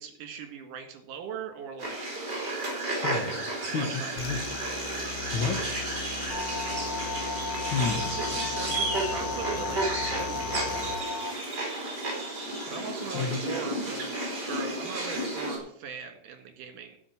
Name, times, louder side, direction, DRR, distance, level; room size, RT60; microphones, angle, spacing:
voice 1, 0.0-2.0 3.7-4.3 7.9-10.6 12.7-14.1 14.5-17.0, right 7 dB, 75° right, 7 dB, 3.1 m, -40 dB
sound 1, 1.8-15.6, right 2 dB, 30° right, 3.8 m, -32 dB
voice 2, 3.0-4.6 5.3-5.9 7.7-8.1 13.1-13.4, left 4 dB, 70° left, 5 dB, 1.2 m, -31 dB
sound 2, 4.2-11.0, left 7 dB, 85° left, 2.3 m, -39 dB
sound 3, 6.3-11.3, left 3 dB, 40° left, 3.0 m, -35 dB
12.0 x 5.9 x 8.4 m, 0.64 s
omnidirectional pair, 3.8 m